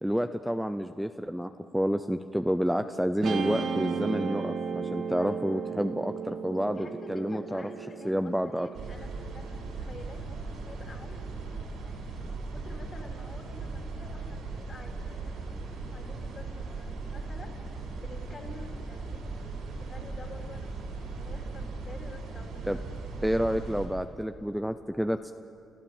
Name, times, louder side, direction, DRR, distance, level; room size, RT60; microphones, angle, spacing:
voice 1, 0.0-7.6 8.0-8.7 22.6-22.8 23.2-25.3, equal, ahead, 8 dB, 0.6 m, -29 dB
Guitar, 3.2-9.7, right 6 dB, 65° right, 1.4 m, -35 dB
voice 2, 5.2-5.6 6.7-22.6, left 3 dB, 40° left, 1 dB, 4.1 m, -49 dB
sound 1, 8.7-23.9, right 3 dB, 80° right, 5.5 m, -38 dB
28.5 x 14.5 x 7.2 m, 2.6 s
cardioid pair, 90°, 0 cm